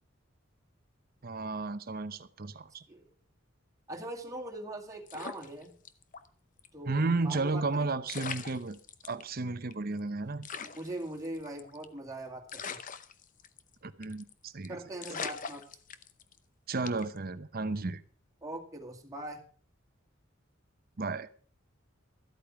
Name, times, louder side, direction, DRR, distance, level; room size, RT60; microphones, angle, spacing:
voice 1, 1.2-2.8 6.9-10.5 13.8-14.8 16.7-18.0 21.0-21.3, right 3 dB, 50° right, 0.8 m, -33 dB
voice 2, 3.9-5.7 6.7-7.9 10.6-12.8 14.7-15.6 18.4-19.4, right 1 dB, 15° right, 2.2 m, -41 dB
sound 1, 5.1-6.3 6.6-6.7 7.7-7.8 8.1-9.2 9.7-9.8 10.0-10.1 10.4-12.0 12.5-13.7 14.0-14.3 14.6-14.7 15.0-16.4 16.9-17.2, left 6 dB, 40° left, 0.8 m, -41 dB
13.5 x 8.6 x 5.9 m
head